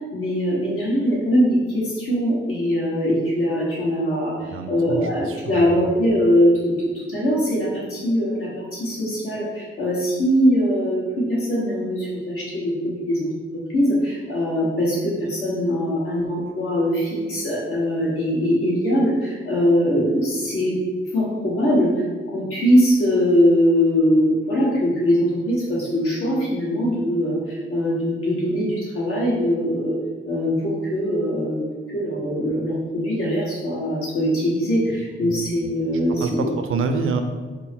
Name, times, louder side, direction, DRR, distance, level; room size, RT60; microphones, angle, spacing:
voice 1, 0.1-13.3 13.7-20.8 21.1-21.9 22.3-29.9 30.3-31.6 31.9-36.5, equal, 85° left, -6 dB, 1.3 m, -21 dB
voice 2, 4.5-5.8 35.2-35.4 36.1-37.2, right 4 dB, 80° right, 6 dB, 0.4 m, -27 dB
3.6 x 2.0 x 4.3 m, 1.4 s
cardioid pair, 105°, 21 cm